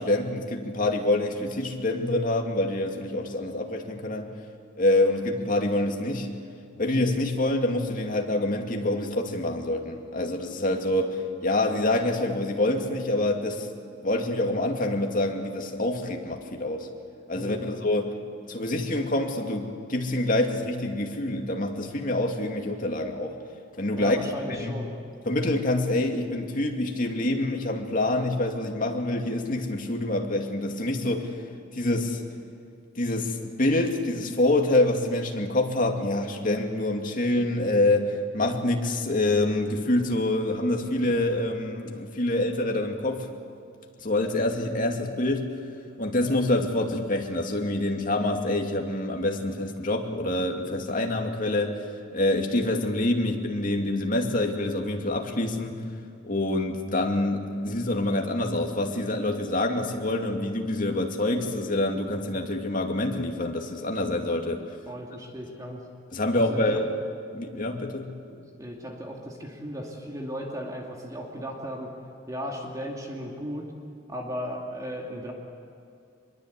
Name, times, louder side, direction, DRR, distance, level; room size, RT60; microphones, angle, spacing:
voice 1, 0.0-4.3 4.8-6.3 6.8-13.7 14.0-16.9 17.3-18.2 18.5-23.4 23.8-24.8 25.3-31.3 31.7-32.2 33.0-43.3 44.0-45.5 46.0-55.8 56.2-64.6 66.1-66.9 67.3-68.2, left 1 dB, 45° left, 2 dB, 2.5 m, -26 dB
voice 2, 17.3-17.7 23.9-24.9 64.9-65.9 66.4-66.8 68.3-71.9 72.3-73.7 74.1-75.3, equal, 20° right, 0 dB, 2.5 m, -36 dB
25.0 x 22.5 x 8.3 m, 2.5 s
head